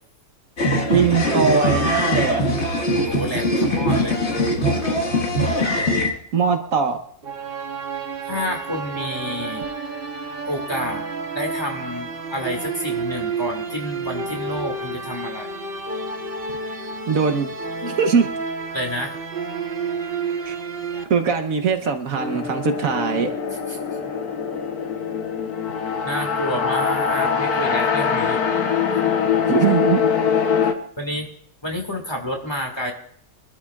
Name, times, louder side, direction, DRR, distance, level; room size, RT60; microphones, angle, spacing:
sound 1, 0.6-6.1, equal, 50° left, 2.0 m, -21 dB
voice 1, 0.9-2.6 6.3-7.0 17.1-17.5 18.0-18.3 20.4-20.5 21.1-23.3 29.5-30.0, right 6 dB, 65° right, 6 dB, 1.4 m, -21 dB
voice 2, 3.0-4.2 8.2-9.6 10.5-15.5 17.8-17.9 18.7-19.1 20.8-21.1 23.7-23.8 26.0-28.4 31.0-31.3 31.6-32.9, equal, 15° left, 1 dB, 2.1 m, -29 dB
sound 2, 7.2-21.0, right 4 dB, 40° right, 1.2 m, -30 dB
sound 3, 22.2-30.7, left 6 dB, 90° left, 1.6 m, -23 dB
24.0 x 12.5 x 2.4 m, 0.62 s
omnidirectional pair, 1.6 m